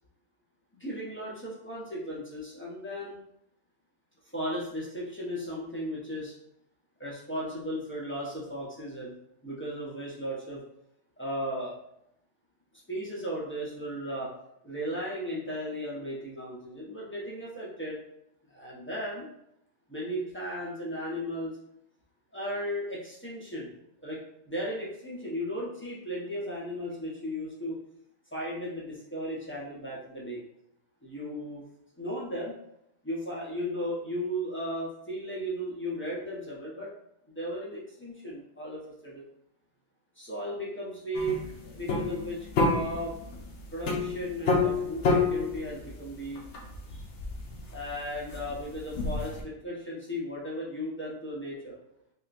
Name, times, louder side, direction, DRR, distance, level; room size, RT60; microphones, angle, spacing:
voice 1, 0.7-3.1 4.3-6.3 7.0-9.1 9.4-10.6 11.2-11.8 12.9-14.3 14.6-18.0 18.5-19.3 19.9-21.6 22.3-23.7 24.0-24.2 24.5-27.8 28.3-30.4 31.0-31.6 32.0-32.5 33.0-36.9 37.3-39.2 40.2-43.1 43.7-46.4 46.9-47.0 47.7-51.7, equal, 20° left, -6 dB, 0.3 m, -35 dB
sound 1, 41.1-49.4, left 3 dB, 60° left, 0.9 m, -30 dB
3.6 x 2.4 x 2.4 m, 0.77 s
omnidirectional pair, 1.5 m